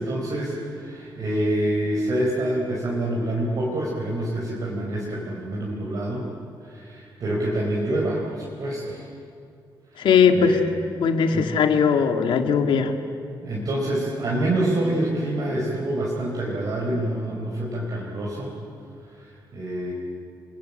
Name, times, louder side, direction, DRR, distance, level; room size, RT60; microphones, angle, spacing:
voice 1, 0.0-6.2 6.6-9.1 9.9-10.1 10.3-10.6 11.3-11.5 13.4-18.5 19.1-19.9, right 1 dB, 45° right, -4 dB, 4.7 m, -26 dB
voice 2, 10.0-10.6 11.0-12.9, left 6 dB, 80° left, 5 dB, 2.2 m, -19 dB
29.0 x 23.0 x 8.9 m, 2.5 s
wide cardioid pair, 180°, 8 cm